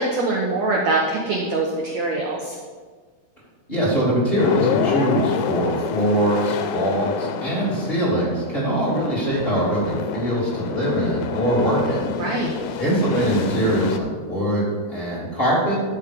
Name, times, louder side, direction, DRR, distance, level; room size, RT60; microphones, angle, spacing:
voice 1, 0.0-2.6 12.2-12.5, right 2 dB, 70° right, -1 dB, 1.7 m, -23 dB
voice 2, 3.7-12.4 12.8-15.7, right 1 dB, 15° left, -8 dB, 2.8 m, -22 dB
sound 1, 4.4-14.0, left 7 dB, 85° left, 2.6 m, -27 dB
12.5 x 6.3 x 5.2 m, 1.5 s
omnidirectional pair, 4.7 m